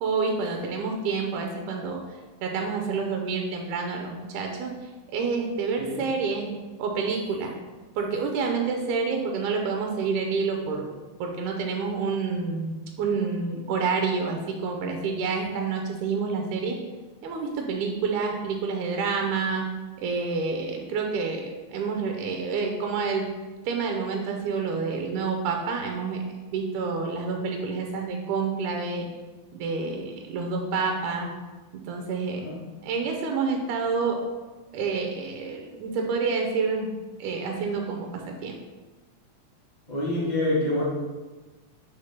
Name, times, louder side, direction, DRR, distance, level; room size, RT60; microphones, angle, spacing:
voice 1, 0.0-2.0 2.4-6.5 6.8-7.5 8.0-10.9 11.2-16.8 17.2-19.7 20.0-23.3 23.7-26.2 26.5-29.1 29.5-31.3 31.7-32.5 32.8-34.2 34.7-36.9 37.2-38.5, right 4 dB, 85° right, 2 dB, 2.1 m, -28 dB
voice 2, 39.9-40.8, left 1 dB, 85° left, -8 dB, 0.4 m, -26 dB
5.1 x 4.3 x 5.5 m, 1.2 s
omnidirectional pair, 3.6 m